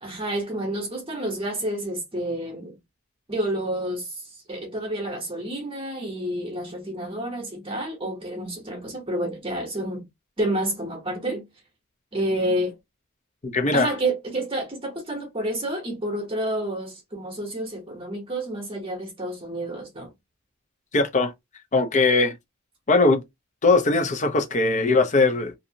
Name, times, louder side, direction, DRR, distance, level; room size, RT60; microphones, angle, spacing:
voice 1, 0.0-2.7 3.3-10.0 10.4-11.4 12.1-12.7 13.7-20.1, right 1 dB, 25° right, 0.8 m, -29 dB
voice 2, 13.4-13.9 20.9-21.3 21.7-22.4 22.9-23.2 23.6-25.5, left 3 dB, 35° left, 0.6 m, -20 dB
2.6 x 2.6 x 2.7 m
head